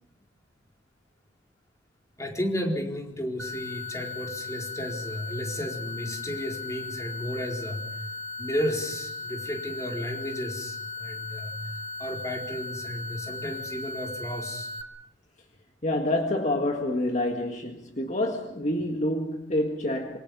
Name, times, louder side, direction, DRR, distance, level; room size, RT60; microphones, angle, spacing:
voice 1, 2.2-8.1 8.4-11.6 12.0-14.7, equal, 15° left, 4.4 m, -33 dB
sound 1, 3.4-14.8, left 4 dB, 85° right, 2.5 m, -37 dB
voice 2, 15.8-20.2, left 1 dB, 40° left, 1.9 m, -27 dB
27.0 x 25.0 x 5.6 m
head